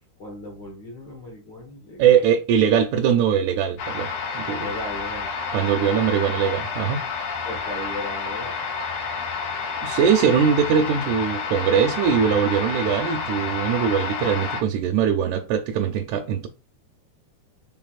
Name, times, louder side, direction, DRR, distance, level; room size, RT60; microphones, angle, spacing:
voice 1, 0.2-2.2 4.6-5.3 5.9-6.1 7.4-8.5, left 1 dB, 50° left, 1.5 m, -36 dB
voice 2, 2.0-4.7 5.5-7.0 9.8-16.5, right 8 dB, 80° right, 1.9 m, -21 dB
sound 1, 3.8-14.6, left 5 dB, 70° left, 1.7 m, -29 dB
6.0 x 3.8 x 2.3 m
omnidirectional pair, 3.5 m